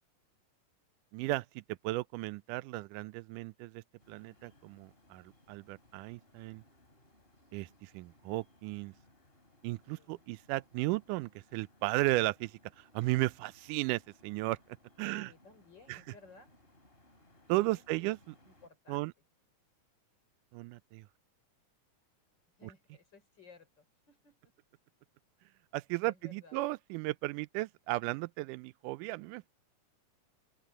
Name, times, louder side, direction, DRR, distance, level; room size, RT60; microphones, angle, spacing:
voice 1, 1.1-6.6 7.5-8.9 9.6-14.6 15.0-15.3 15.9-16.0 17.5-18.4 18.9-19.1 20.5-21.1 22.6-22.7 25.7-29.5, right 20 dB, 90° right, 2.1 m, -35 dB
sound 1, 4.0-18.7, left 1 dB, 20° left, 3.3 m, -65 dB
voice 2, 9.9-10.3 15.0-16.6 17.7-18.1 18.4-19.1 22.6-24.5 26.0-26.6, left 4 dB, 35° left, 4.9 m, -58 dB
open air
omnidirectional pair, 3.6 m